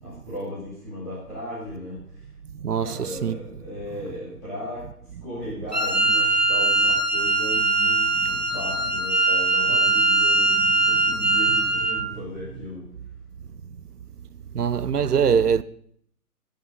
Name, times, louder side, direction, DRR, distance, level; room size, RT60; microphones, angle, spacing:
voice 1, 0.0-2.0 2.8-4.9 5.2-12.8, left 1 dB, 10° left, 2.8 m, -36 dB
voice 2, 2.5-3.4 8.1-8.4 10.5-11.4 14.5-15.6, right 7 dB, 75° right, 0.9 m, -25 dB
Wind instrument woodwind instrument, 5.7-12.1, right 3 dB, 30° right, 0.8 m, -21 dB
20.5 x 9.2 x 3.8 m
hypercardioid pair, 180°, 46 cm